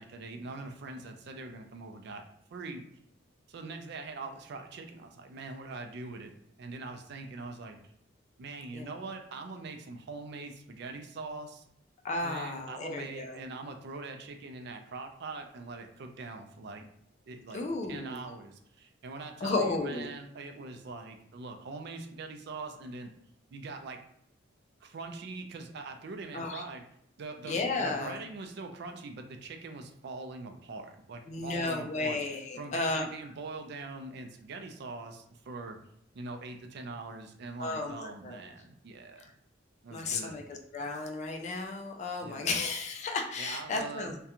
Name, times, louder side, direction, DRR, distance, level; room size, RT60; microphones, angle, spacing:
voice 1, 0.0-2.2 2.5-2.8 3.5-7.8 8.4-11.6 12.2-16.9 17.3-23.1 23.5-24.0 24.8-26.8 27.2-32.2 32.6-35.8 36.1-39.3 39.8-40.4 42.2-42.5 43.4-44.2, right 3 dB, 60° right, 5 dB, 0.4 m, -42 dB
voice 2, 12.0-13.4 17.5-18.2 19.4-20.1 26.3-26.6 27.4-28.2 31.3-33.0 37.6-38.4 39.9-44.2, left 3 dB, 35° left, 2 dB, 0.3 m, -33 dB
2.4 x 2.2 x 2.8 m, 0.73 s
head